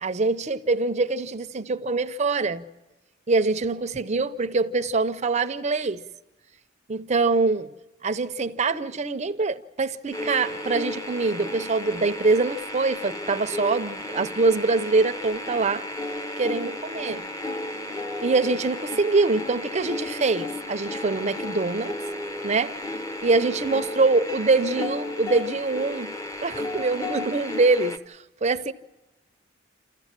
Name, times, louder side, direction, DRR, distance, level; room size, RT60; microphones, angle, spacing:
voice 1, 0.0-2.7 3.3-6.0 6.9-7.7 8.0-15.8 16.4-17.2 18.2-22.0 22.4-22.8 23.2-26.1 26.4-28.7, right 3 dB, 35° right, 0.6 m, -24 dB
sound 1, 10.1-28.0, left 1 dB, 15° left, 0.8 m, -33 dB
27.5 x 14.5 x 7.4 m
head